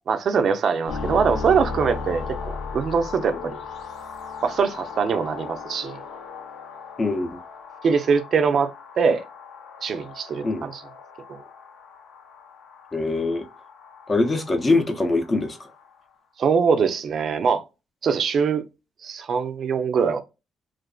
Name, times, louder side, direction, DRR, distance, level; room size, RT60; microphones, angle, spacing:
voice 1, 0.1-3.6 4.4-6.0 7.8-8.7 9.0-9.2 9.8-10.8 11.3-11.4 16.4-17.6 18.0-18.6 19.0-20.2, right 6 dB, 55° right, 0.5 m, -22 dB
sound 1, 0.9-16.0, left 5 dB, 75° left, 0.6 m, -37 dB
voice 2, 7.0-7.3 10.4-10.7 12.9-13.5 14.1-15.6, left 3 dB, 30° left, 0.6 m, -22 dB
2.5 x 2.5 x 2.3 m
cardioid pair, 90°, 0 cm